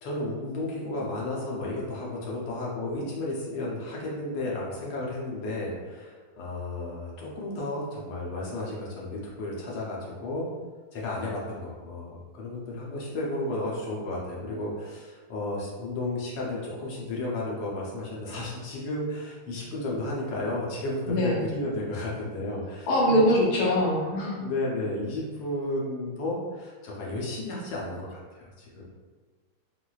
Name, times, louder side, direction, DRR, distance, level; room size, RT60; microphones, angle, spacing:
voice 1, 0.0-10.5 10.9-23.3 24.4-28.8, left 2 dB, 85° left, -4 dB, 1.4 m, -33 dB
voice 2, 21.0-21.4 22.9-24.5, equal, 60° left, -4 dB, 1.2 m, -23 dB
4.0 x 2.4 x 2.3 m, 1.4 s
omnidirectional pair, 1.9 m